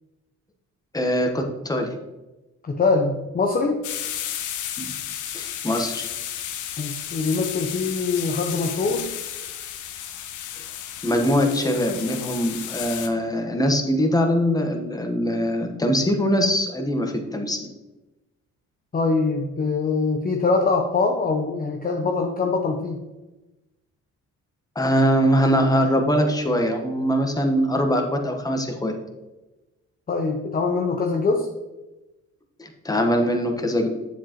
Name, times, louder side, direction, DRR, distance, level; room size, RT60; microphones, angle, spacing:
voice 1, 0.9-1.9 4.8-4.9 5.3-6.1 11.0-17.7 24.7-28.9 32.6-33.9, equal, 10° left, 3 dB, 1.2 m, -22 dB
voice 2, 2.6-3.8 6.8-9.1 18.9-23.0 30.1-31.5, left 4 dB, 30° left, 2 dB, 0.8 m, -23 dB
sound 1, 3.8-13.1, left 10 dB, 80° left, 0.8 m, -33 dB
7.3 x 7.2 x 3.0 m, 1.1 s
cardioid pair, 90°, 30 cm